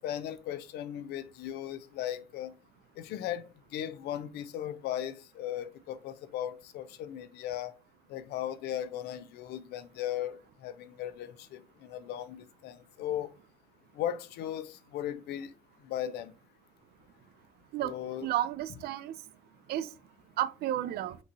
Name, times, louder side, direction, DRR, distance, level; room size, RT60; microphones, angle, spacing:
voice 1, 0.0-2.5 3.0-3.5 3.7-7.7 8.1-13.3 14.0-15.5 15.8-16.3 17.8-18.3, left 11 dB, 75° left, 0.5 m, -37 dB
voice 2, 18.2-19.1 19.7-19.9 20.4-21.2, right 12 dB, 70° right, 0.4 m, -31 dB
5.8 x 3.0 x 2.7 m
cardioid pair, 110°, 17 cm